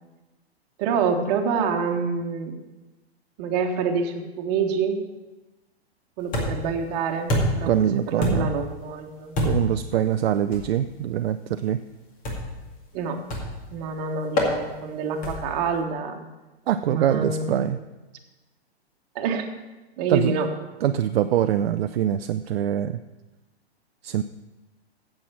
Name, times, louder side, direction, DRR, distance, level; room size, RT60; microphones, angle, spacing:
voice 1, 0.8-2.5 3.4-5.0 6.2-7.7 8.1-9.3 12.9-13.2 13.7-16.2 16.9-17.6 19.1-19.5 20.0-20.5, right 5 dB, 40° right, 4 dB, 1.4 m, -27 dB
sound 1, 6.3-6.8 7.3-7.7 8.2-8.7 9.4-9.8 10.5-10.7 12.2-12.6 13.3-13.7 14.4-14.6 15.2-15.6, left 1 dB, 25° left, 2.2 m, -25 dB
voice 2, 7.7-8.5 9.4-11.8 16.7-17.8 20.1-20.4 20.8-23.0 24.0-24.2, right 10 dB, 65° right, 10 dB, 0.5 m, -23 dB
8.5 x 7.6 x 7.1 m, 1.1 s
hypercardioid pair, 125°, 32 cm